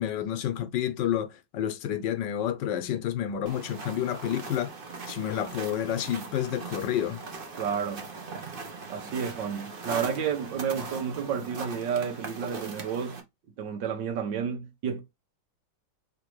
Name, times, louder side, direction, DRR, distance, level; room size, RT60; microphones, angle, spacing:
voice 1, 0.0-4.7 5.1-7.2, left 10 dB, 70° left, 1.2 m, -29 dB
sound 1, 3.5-13.2, right 4 dB, 40° right, 0.8 m, -40 dB
voice 2, 7.6-8.1 8.9-13.2 13.6-15.0, right 7 dB, 70° right, 1.6 m, -31 dB
5.0 x 3.4 x 3.1 m
omnidirectional pair, 2.1 m